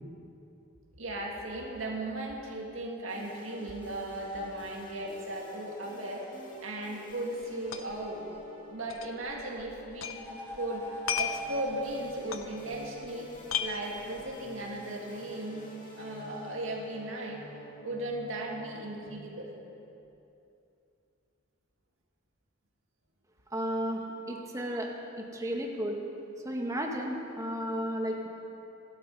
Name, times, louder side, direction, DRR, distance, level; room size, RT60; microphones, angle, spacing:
voice 1, 1.0-8.2 8.7-13.3 13.6-15.7 16.0-17.4 17.8-19.5, right 1 dB, 80° right, -1 dB, 2.1 m, -37 dB
sound 1, 3.1-19.1, equal, 40° left, 2.1 m, -50 dB
sound 2, 6.6-7.4 9.8-11.8, right 1 dB, 15° left, 3.7 m, -42 dB
sound 3, 7.1-7.2 7.4-8.1 8.3-8.4 8.9-10.2 10.5-13.1 13.3-14.4, left 8 dB, 85° left, 0.8 m, -35 dB
voice 2, 23.5-24.0 24.3-24.9 25.2-26.0 26.4-28.3, equal, 15° right, 1 dB, 1.5 m, -33 dB
16.0 x 12.5 x 5.5 m, 2.8 s
head